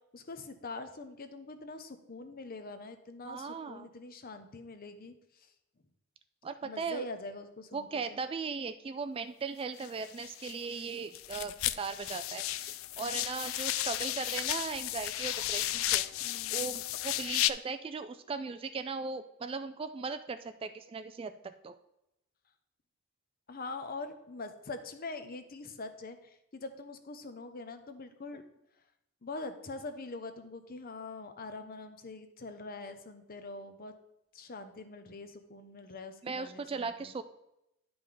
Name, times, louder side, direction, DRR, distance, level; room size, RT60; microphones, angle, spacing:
voice 1, 0.1-5.5 6.6-8.2 16.2-16.8 23.5-28.4 29.2-33.9 34.3-37.1, left 3 dB, 45° left, 9 dB, 0.7 m, -44 dB
voice 2, 3.2-3.9 6.4-7.1 7.7-21.7 36.2-37.2, right 5 dB, 25° right, 10 dB, 0.3 m, -38 dB
sound 1, 9.8-10.9 11.1-17.5, left 15 dB, 65° left, 0.3 m, -34 dB
10.5 x 5.2 x 3.9 m, 0.85 s
head